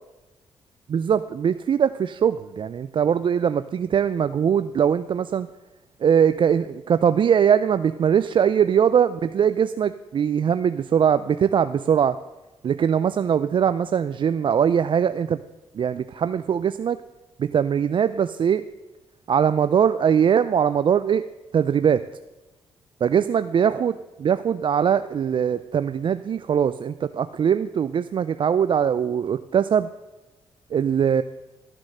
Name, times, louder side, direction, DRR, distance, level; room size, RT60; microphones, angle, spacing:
voice 1, 0.9-5.5 6.0-12.2 12.6-15.4 15.7-17.0 17.4-18.6 19.3-21.2 21.5-22.0 23.0-29.9 30.7-31.2, right 8 dB, 50° right, 12 dB, 0.4 m, -21 dB
12.5 x 7.5 x 6.5 m, 1.1 s
cardioid pair, 75°, 11 cm